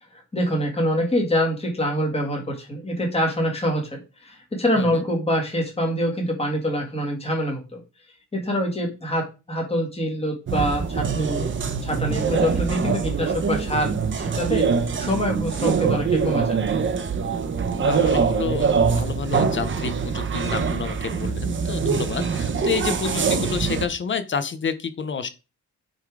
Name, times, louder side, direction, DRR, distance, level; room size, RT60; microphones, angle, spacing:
voice 1, 0.1-7.8 8.3-11.5 11.8-14.6 15.0-16.6, equal, 20° left, 1 dB, 2.2 m, -25 dB
sound 1, 10.5-23.9, right 5 dB, 40° right, 0.9 m, -24 dB
voice 2, 17.8-25.3, left 6 dB, 40° left, 12 dB, 0.8 m, -29 dB
9.1 x 3.8 x 4.9 m, 0.30 s
wide cardioid pair, 175°, 32 cm